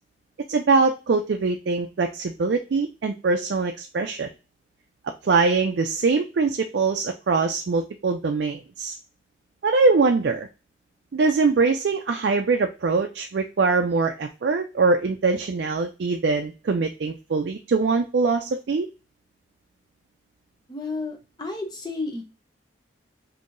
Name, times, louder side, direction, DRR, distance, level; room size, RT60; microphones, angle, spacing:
voice 1, 0.5-4.3 5.2-9.0 9.6-10.5 11.1-18.9, right 4 dB, 65° right, 5 dB, 0.4 m, -23 dB
voice 2, 20.7-22.2, left 3 dB, 20° left, 2 dB, 0.6 m, -32 dB
5.4 x 2.7 x 2.5 m, 0.30 s
head